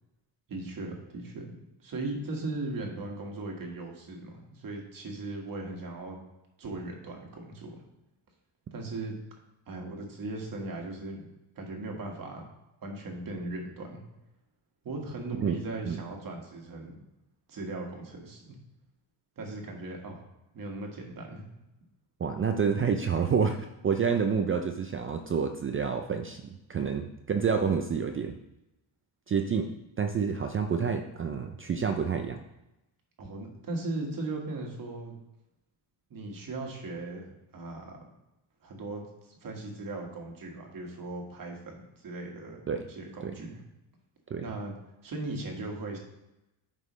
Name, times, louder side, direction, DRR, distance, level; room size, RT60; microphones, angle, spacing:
voice 1, 0.5-1.5 1.8-6.2 6.6-7.8 8.7-9.2 9.7-11.3 11.6-12.4 12.8-14.0 14.8-17.0 17.5-18.6 19.4-20.2 20.5-21.4 33.2-35.2 36.1-37.3 37.5-38.0 38.6-42.6 42.9-43.6 44.4-44.7 45.0-46.0, right 2 dB, 45° right, 1 dB, 1.6 m, -38 dB
voice 2, 22.2-28.4 29.3-29.7 30.0-32.4 42.7-42.8 43.2-43.3 44.3-44.4, right 6 dB, 30° right, 5 dB, 0.4 m, -28 dB
9.4 x 5.4 x 3.1 m, 0.94 s
cardioid pair, 145°, 46 cm